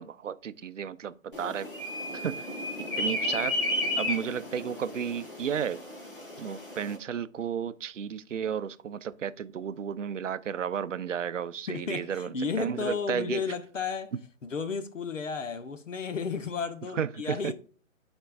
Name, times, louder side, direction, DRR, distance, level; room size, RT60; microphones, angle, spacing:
voice 1, 0.0-1.7 2.1-2.5 3.0-3.6 4.0-5.8 6.4-13.4 16.9-17.5, right 8 dB, 65° right, 0.5 m, -33 dB
sound 1, 1.3-7.0, left 1 dB, 40° left, 1.4 m, -33 dB
voice 2, 11.7-14.1 14.4-17.5, left 5 dB, 65° left, 1.0 m, -33 dB
12.0 x 4.4 x 2.4 m
hypercardioid pair, 180°, 41 cm